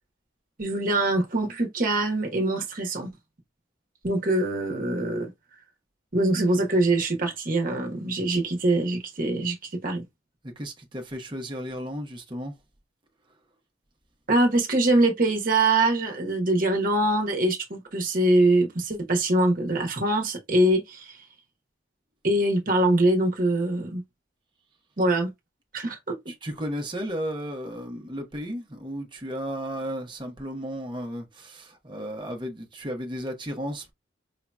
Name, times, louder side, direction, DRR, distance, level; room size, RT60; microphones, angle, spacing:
voice 1, 0.6-3.1 4.0-5.3 6.1-9.6 9.8-10.0 14.3-21.2 22.2-24.0 25.0-25.3 25.7-26.2, right 2 dB, 45° right, 1.1 m, -23 dB
voice 2, 10.4-12.5 26.3-33.9, equal, 25° right, 1.0 m, -34 dB
5.0 x 2.9 x 2.3 m
head